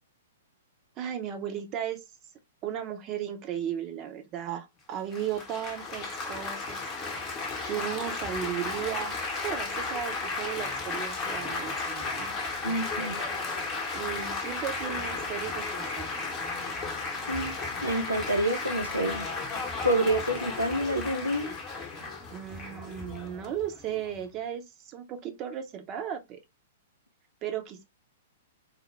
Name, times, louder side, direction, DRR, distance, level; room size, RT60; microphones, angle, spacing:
voice 1, 1.0-2.0 2.6-6.8 7.2-7.3 7.6-9.2 9.4-12.3 13.9-16.1 22.3-26.4 27.4-27.8, right 10 dB, 30° right, 0.8 m, -35 dB
Laughter / Applause / Chatter, 5.1-24.2, left 3 dB, 25° left, 1.0 m, -34 dB
voice 2, 12.6-13.2 17.3-17.5 17.8-19.3 19.8-21.5, right 1 dB, 85° right, 0.7 m, -28 dB
4.1 x 2.1 x 3.2 m
figure-of-eight pair, 105°, 0 cm